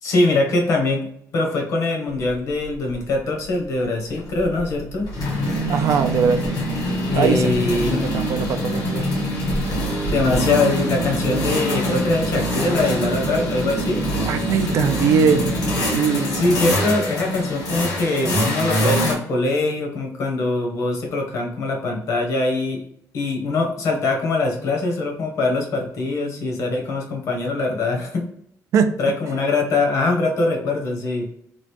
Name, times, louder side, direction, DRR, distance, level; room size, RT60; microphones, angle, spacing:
voice 1, 0.0-5.1 7.0-8.0 9.9-14.0 16.3-22.8 23.1-28.3 29.0-31.3, left 2 dB, 60° left, 2 dB, 0.9 m, -22 dB
sound 1, 2.3-2.4 2.7-2.9 4.2-19.1, equal, 75° left, 1.4 m, -24 dB
voice 2, 5.7-6.6 7.1-9.1 14.3-16.3 28.7-29.0, right 6 dB, 60° right, 8 dB, 0.4 m, -21 dB
3.0 x 2.5 x 3.1 m, 0.70 s
cardioid pair, 175°, 6 cm